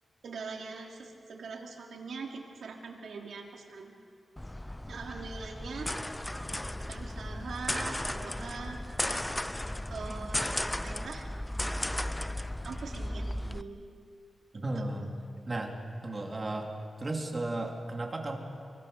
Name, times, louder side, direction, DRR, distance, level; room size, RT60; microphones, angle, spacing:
voice 1, 0.2-3.9 4.9-5.9 6.8-8.8 9.9-11.3 12.6-13.9 14.8-15.1, right 4 dB, 75° right, 1 dB, 3.0 m, -42 dB
sound 1, 4.4-13.6, left 1 dB, 10° left, 0.5 m, -35 dB
voice 2, 14.5-15.1 15.5-15.8 16.0-16.7 17.0-18.4, right 2 dB, 25° right, 2 dB, 2.8 m, -34 dB
24.0 x 24.0 x 6.8 m, 2.3 s
wide cardioid pair, 155°, 0 cm